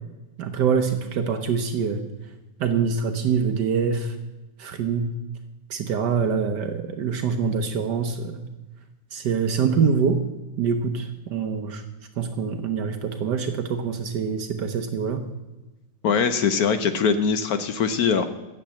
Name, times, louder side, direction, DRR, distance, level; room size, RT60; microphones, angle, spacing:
voice 1, 0.4-2.0 2.6-4.2 4.6-5.2 5.7-8.4 9.1-10.2 10.6-11.8 12.2-15.2, right 6 dB, 65° right, 7 dB, 1.4 m, -25 dB
voice 2, 16.0-18.3, left 6 dB, 60° left, 10 dB, 1.1 m, -22 dB
9.3 x 7.6 x 8.5 m, 1.1 s
omnidirectional pair, 2.1 m